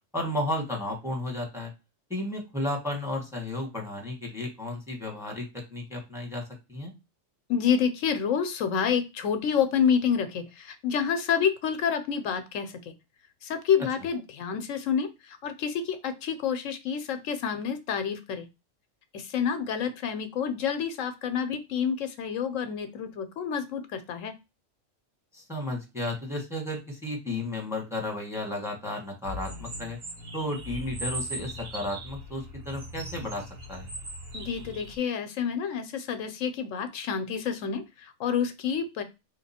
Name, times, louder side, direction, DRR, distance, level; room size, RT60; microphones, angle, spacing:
voice 1, 0.1-1.7 2.1-6.4 6.7-6.9 25.3-30.0 30.3-33.9, left 1 dB, ahead, 0 dB, 1.2 m, -33 dB
voice 2, 7.5-12.8 13.4-18.5 19.1-24.3 34.3-39.0, left 7 dB, 80° left, 9 dB, 1.0 m, -28 dB
sound 1, 29.2-35.0, right 1 dB, 85° right, 1.8 m, -39 dB
3.8 x 2.9 x 4.2 m, 0.25 s
omnidirectional pair, 1.3 m